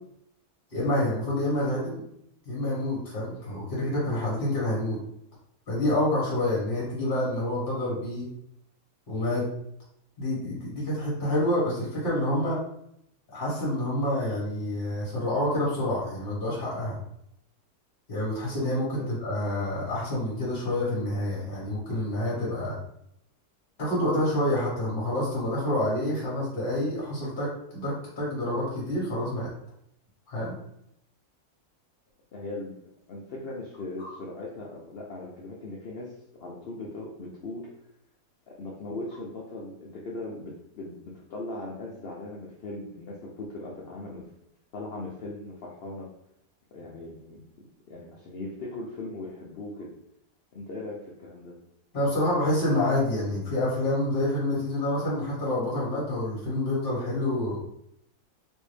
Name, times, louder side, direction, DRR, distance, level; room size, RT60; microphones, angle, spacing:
voice 1, 0.7-2.0 2.4-5.0 5.7-8.3 9.1-9.5 10.2-12.6 13.3-17.0 18.1-22.8 23.8-29.5 30.3-30.6 34.0-34.2 51.9-57.6, left 1 dB, 40° left, -6 dB, 1.2 m, -28 dB
voice 2, 32.3-32.8 33.1-36.1 36.4-37.7 38.5-44.3 44.7-46.1 46.7-47.4 47.9-49.9 50.5-51.6, left 2 dB, 75° left, -4 dB, 0.5 m, -39 dB
3.1 x 2.5 x 3.2 m, 0.76 s
omnidirectional pair, 1.7 m